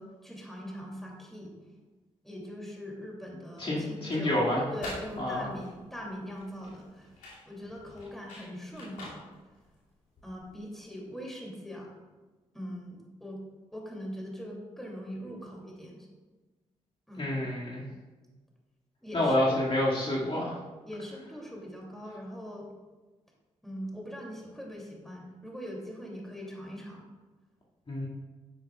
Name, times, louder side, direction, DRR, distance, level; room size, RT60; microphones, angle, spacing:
voice 1, 0.0-1.5 2.2-4.4 4.7-7.1 7.5-9.3 10.2-12.0 12.5-13.4 13.7-16.1 17.1-17.3 19.0-19.6 20.9-22.7 23.6-27.1, equal, ahead, -2 dB, 2.7 m, -41 dB
voice 2, 3.6-4.6 5.2-5.5 17.2-17.8 19.1-20.6 27.9-28.1, left 1 dB, 40° left, -5 dB, 2.2 m, -28 dB
sound 1, 4.5-10.6, left 2 dB, 85° left, 2.6 m, -46 dB
9.7 x 8.3 x 2.4 m, 1.3 s
supercardioid pair, 45°, 13 cm